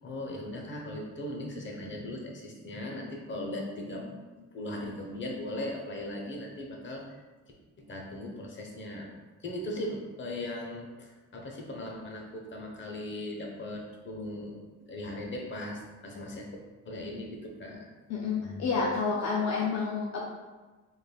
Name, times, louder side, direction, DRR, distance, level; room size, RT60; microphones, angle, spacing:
voice 1, 0.0-7.1 7.8-9.1 9.4-16.5 16.8-17.9, left 1 dB, 40° left, 0 dB, 0.8 m, -38 dB
voice 2, 18.1-20.3, left 5 dB, 60° left, -3 dB, 0.5 m, -29 dB
3.5 x 3.4 x 2.3 m, 1.3 s
cardioid pair, 90°, 30 cm